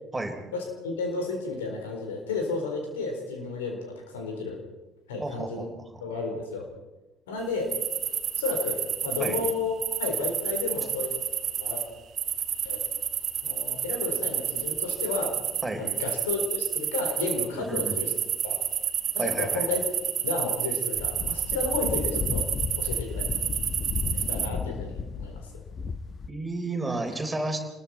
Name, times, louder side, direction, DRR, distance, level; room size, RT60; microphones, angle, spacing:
voice 1, 0.5-4.6 5.1-5.7 6.0-6.7 7.3-7.7 8.4-9.7 10.0-11.1 11.6-11.8 12.6-12.8 13.4-15.4 15.7-18.1 18.4-18.6 19.1-19.8 20.2-22.5 22.8-23.2 24.1-25.4, left 4 dB, 75° left, 2 dB, 4.1 m, -32 dB
voice 2, 5.2-5.9 9.2-9.4 15.6-15.8 17.5-18.0 19.2-19.7 26.3-27.6, right 2 dB, 15° right, 4 dB, 3.7 m, -32 dB
sound 1, 7.7-9.5 9.8-11.8 12.2-17.5 17.7-24.5, right 9 dB, 45° right, 1.5 m, -30 dB
sound 2, 21.0-26.3, left 5 dB, 40° left, 1.2 m, -33 dB
28.5 x 21.0 x 4.4 m, 1.1 s
figure-of-eight pair, 55°, 0 cm